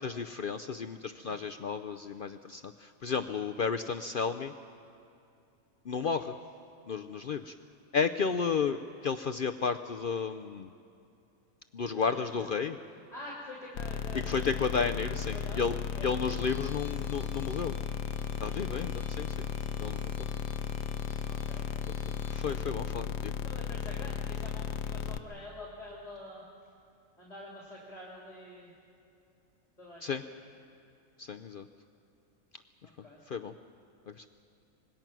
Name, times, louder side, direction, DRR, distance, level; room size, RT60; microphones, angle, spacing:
voice 1, 0.0-4.5 5.9-6.4 6.9-7.5 7.9-8.8 9.0-10.7 11.7-12.8 14.3-15.8 16.0-17.7 18.4-19.5 19.8-20.1 22.1-23.3 30.0-30.2 31.2-31.7 33.3-33.5 34.1-34.3, left 5 dB, 55° left, 8 dB, 0.6 m, -32 dB
voice 2, 1.1-1.4 6.1-6.4 11.9-12.5 12.9-14.9 15.3-15.6 15.9-16.2 18.4-18.7 21.3-21.7 23.4-26.4 27.2-28.7 29.8-30.3 32.8-33.2, left 1 dB, 30° left, -4 dB, 3.4 m, -47 dB
sound 1, 13.7-25.2, left 8 dB, 80° left, 1.1 m, -35 dB
Trumpet, 16.1-22.6, equal, 80° right, 7.0 m, -55 dB
26.0 x 21.0 x 6.1 m, 2.6 s
omnidirectional pair, 1.4 m